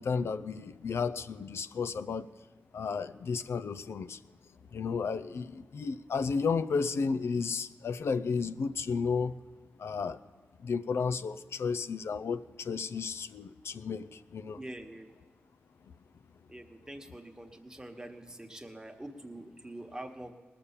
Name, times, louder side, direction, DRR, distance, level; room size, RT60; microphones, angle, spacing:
voice 1, 0.0-2.3 2.7-4.2 4.7-9.4 9.8-10.2 10.6-14.6, left 5 dB, 80° left, 14 dB, 0.4 m, -33 dB
voice 2, 14.6-15.1 16.5-20.3, right 1 dB, 15° right, 4 dB, 1.2 m, -45 dB
19.5 x 6.9 x 7.2 m, 1.3 s
wide cardioid pair, 80°, 4 cm